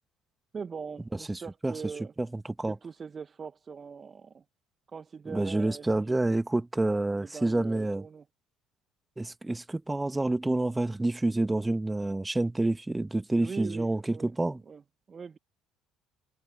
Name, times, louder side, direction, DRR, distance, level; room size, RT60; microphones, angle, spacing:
voice 1, 0.5-2.1 2.6-4.4 4.9-6.2 7.1-8.2 13.4-14.4 14.7-14.8 15.1-15.4, right 5 dB, 35° right, 1.3 m, -41 dB
voice 2, 1.3-1.7 2.2-2.8 5.3-8.0 9.2-14.6, right 2 dB, 15° right, 2.0 m, -28 dB
figure-of-eight pair, 55°, 0 cm